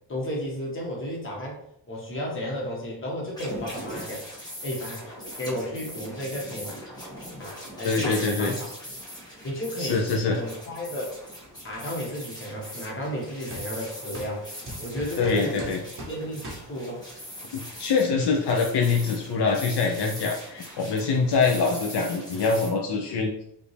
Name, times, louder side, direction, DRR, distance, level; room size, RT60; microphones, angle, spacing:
voice 1, 0.1-1.6 1.9-4.3 4.6-5.0 5.4-6.8 7.3-8.7 9.4-11.1 11.6-14.4 14.8-15.7 16.1-17.0, equal, 30° left, -3 dB, 1.3 m, -33 dB
sound 1, 3.3-22.7, equal, 10° left, 1.5 m, -40 dB
voice 2, 7.8-8.5 9.8-10.4 15.2-15.8 17.5-23.4, left 4 dB, 70° left, 0 dB, 0.7 m, -24 dB
sound 2, 10.9-11.8 12.5-12.6 13.5-13.7 14.1-14.3 14.7-16.2 16.4-16.6, right 1 dB, 30° right, 1.1 m, -40 dB
5.2 x 2.7 x 3.3 m, 0.75 s
wide cardioid pair, 150°, 43 cm